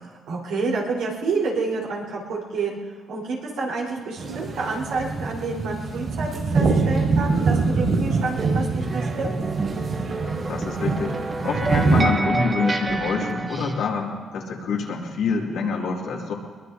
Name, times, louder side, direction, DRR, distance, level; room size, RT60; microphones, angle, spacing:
voice 1, 0.3-2.8 3.1-9.3, right 3 dB, 90° right, -4 dB, 4.2 m, -28 dB
sound 1, 4.2-12.0, right 4 dB, 50° right, 5.0 m, -24 dB
sound 2, 8.4-13.9, right 3 dB, 30° right, 1.0 m, -28 dB
voice 2, 10.2-11.2 11.4-16.3, left 4 dB, 80° left, -1 dB, 2.5 m, -26 dB
22.5 x 21.5 x 2.8 m, 1.5 s
cardioid pair, 90°, 0 cm